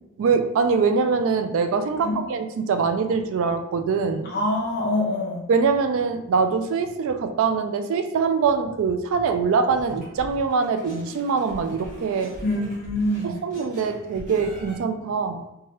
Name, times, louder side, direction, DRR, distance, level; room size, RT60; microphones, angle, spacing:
voice 1, 0.2-4.3 5.5-12.3 13.2-15.4, right 5 dB, 60° right, 7 dB, 0.3 m, -23 dB
voice 2, 4.2-5.4 12.4-13.3, left 1 dB, 45° left, -4 dB, 0.5 m, -25 dB
sound 1, 9.7-14.7, equal, 35° right, 1.2 m, -42 dB
3.1 x 2.3 x 2.9 m, 0.89 s
head